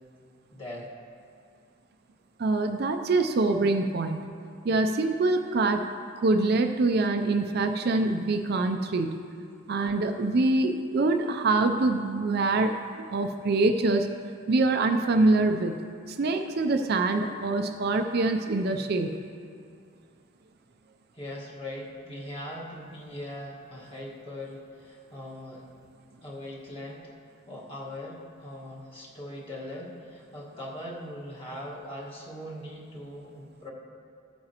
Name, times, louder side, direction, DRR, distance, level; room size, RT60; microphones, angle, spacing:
voice 1, 0.5-0.9 21.1-25.7 26.2-27.1 27.5-33.7, left 1 dB, 25° left, -5 dB, 1.5 m, -40 dB
voice 2, 2.4-4.2 4.6-5.8 6.2-9.2 9.7-14.1 14.5-19.2, right 2 dB, 50° right, 6 dB, 0.4 m, -25 dB
14.5 x 8.7 x 2.9 m, 2.3 s
head